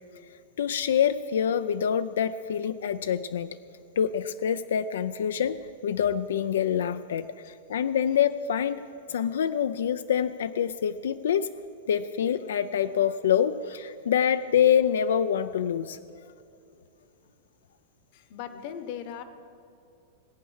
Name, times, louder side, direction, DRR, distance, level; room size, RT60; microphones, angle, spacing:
voice 1, 0.6-3.5 4.0-5.6 5.8-8.8 9.1-11.5 11.9-16.0, left 8 dB, 90° left, 12 dB, 0.4 m, -26 dB
voice 2, 18.1-19.2, left 9 dB, 45° left, 11 dB, 0.9 m, -38 dB
18.0 x 8.5 x 6.3 m, 2.5 s
supercardioid pair, 160°, 0 cm